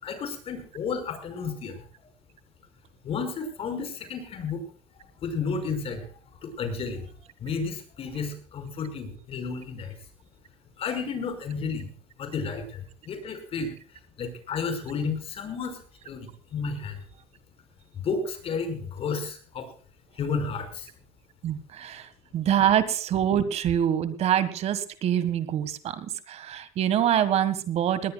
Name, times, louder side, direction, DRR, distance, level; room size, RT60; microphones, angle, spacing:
voice 1, 0.0-1.9 3.0-4.6 5.0-6.1 6.4-7.1 7.4-9.9 10.8-11.9 12.2-13.7 14.2-17.0 17.9-19.7 20.1-20.9, left 5 dB, 45° left, 8 dB, 5.4 m, -32 dB
voice 2, 21.4-28.1, right 10 dB, 50° right, 13 dB, 1.7 m, -25 dB
20.0 x 19.0 x 2.3 m, 0.43 s
cardioid pair, 115°, 14 cm